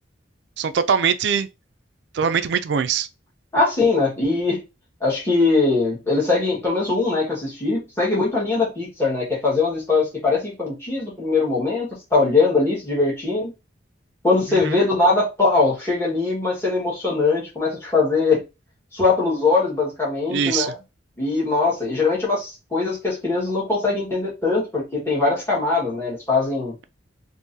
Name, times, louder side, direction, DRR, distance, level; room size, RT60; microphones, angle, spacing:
voice 1, 0.6-1.5 2.1-3.1 14.5-14.8 20.3-20.7, right 6 dB, 65° right, 0.4 m, -22 dB
voice 2, 3.5-4.6 5.0-13.5 14.2-18.4 18.9-20.8 21.2-26.8, left 3 dB, 15° left, 1.5 m, -21 dB
3.7 x 2.6 x 2.6 m
head